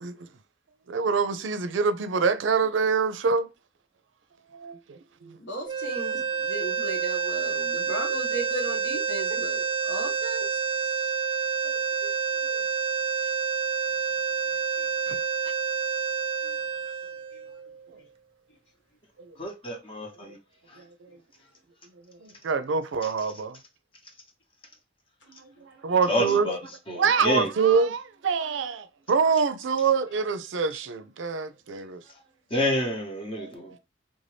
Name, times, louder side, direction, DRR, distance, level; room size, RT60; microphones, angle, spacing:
voice 1, 0.9-3.5 4.5-5.4 9.3-9.4 11.6-12.1 12.4-12.6 15.1-15.2 19.2-19.3 20.8-21.2 22.1-23.6 25.3-26.5 27.0-32.0 33.4-33.5, right 5 dB, 75° right, 0.5 m, -26 dB
voice 2, 5.4-11.3 14.5-15.0 16.4-16.6 17.3-17.4 20.7-20.8 25.2-25.7, right 2 dB, 75° left, 1.4 m, -37 dB
sound 1, 5.7-17.9, right 6 dB, 30° right, 0.5 m, -28 dB
voice 3, 19.4-20.4 20.7-20.8 26.1-26.6 26.9-27.5 32.5-33.8, left 1 dB, 30° left, 0.9 m, -28 dB
3.5 x 2.6 x 3.2 m
head